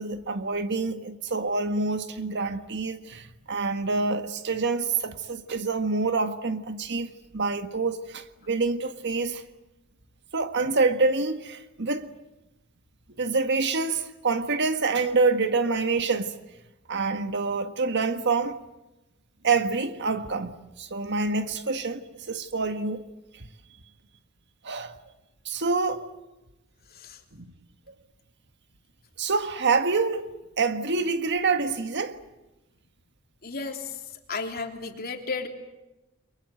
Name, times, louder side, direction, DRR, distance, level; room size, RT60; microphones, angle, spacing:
voice 1, 0.0-9.4 10.3-12.1 13.2-16.3 16.9-18.6 19.4-23.0 23.3-23.5 24.6-24.9 25.4-26.0 27.3-27.5 29.2-32.2, right 4 dB, 55° right, 1.6 m, -27 dB
voice 2, 33.4-34.0 34.3-35.5, left 4 dB, 45° left, 3.3 m, -33 dB
30.0 x 23.5 x 7.9 m
head